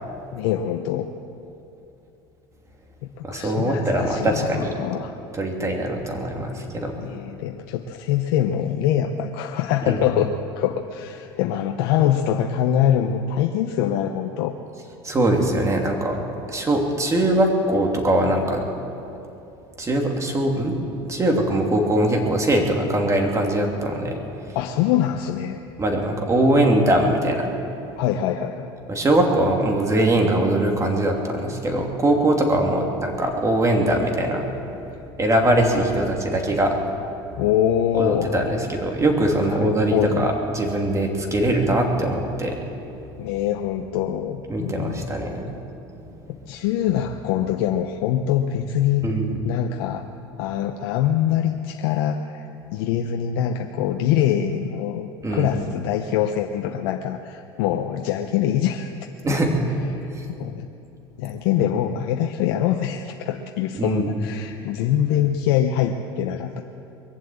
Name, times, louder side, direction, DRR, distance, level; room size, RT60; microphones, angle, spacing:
voice 1, 0.3-1.1 3.2-5.1 7.0-14.5 24.5-25.6 28.0-28.7 37.4-38.8 39.4-40.3 43.2-45.1 46.3-49.1 49.4-50.1 50.4-52.5 52.7-58.9 59.9-60.6 61.2-66.6, left 10 dB, 75° left, 5 dB, 0.8 m, -24 dB
voice 2, 3.3-4.7 5.3-6.9 9.9-10.0 15.0-16.2 16.5-18.6 19.8-20.8 21.1-24.2 25.8-27.5 28.9-34.4 35.2-36.7 37.9-42.6 44.5-45.4 49.0-49.4 55.2-55.5 59.2-59.7 60.1-60.2 63.8-64.2, right 1 dB, 25° right, 1 dB, 2.9 m, -21 dB
22.0 x 7.5 x 8.7 m, 2.8 s
hypercardioid pair, 85°, 13 cm